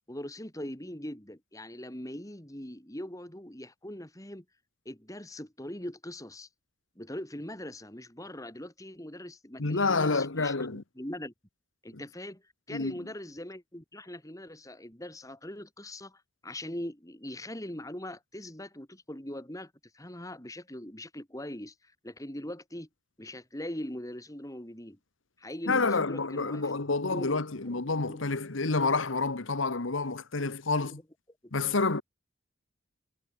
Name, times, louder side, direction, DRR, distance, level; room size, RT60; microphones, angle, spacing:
voice 1, 0.1-4.4 4.8-6.5 7.0-11.3 11.8-12.4 12.7-21.7 22.0-22.9 23.2-25.0 25.4-26.7 27.1-27.4 27.7-27.8 28.1-28.2 30.8-30.9, left 1 dB, 15° left, 3.1 m, -41 dB
voice 2, 9.6-10.8 11.9-12.0 12.7-12.9 25.7-31.0 31.5-32.0, left 3 dB, 90° left, 1.4 m, -28 dB
head